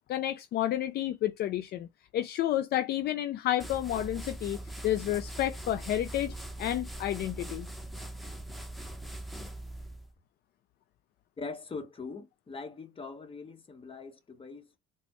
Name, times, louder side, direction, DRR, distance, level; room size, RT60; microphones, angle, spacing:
voice 1, 0.1-7.7, left 12 dB, 55° left, 0.4 m, -30 dB
sound 1, 3.6-10.1, right 1 dB, ahead, 0.9 m, -41 dB
voice 2, 11.4-14.8, left 4 dB, 25° left, 1.2 m, -42 dB
4.1 x 2.2 x 3.1 m
supercardioid pair, 85°, 20 cm